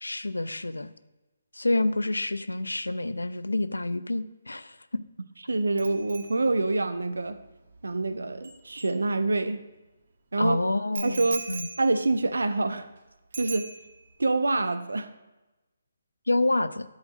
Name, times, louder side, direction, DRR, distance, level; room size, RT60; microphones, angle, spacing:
voice 1, 0.0-0.9 1.5-4.8 10.4-11.7 16.3-16.8, left 2 dB, 75° left, 13 dB, 0.6 m, -28 dB
voice 2, 5.5-7.4 7.8-9.6 10.3-10.6 11.0-11.4 11.8-12.9 13.4-13.7 14.2-15.1, right 2 dB, 70° right, 11 dB, 0.8 m, -26 dB
Bicycle bell, 5.8-9.6 10.9-13.0 13.3-14.2 14.5-14.8, right 4 dB, 50° right, 1.2 m, -41 dB
12.0 x 4.9 x 6.2 m, 1.1 s
figure-of-eight pair, 140°, 0 cm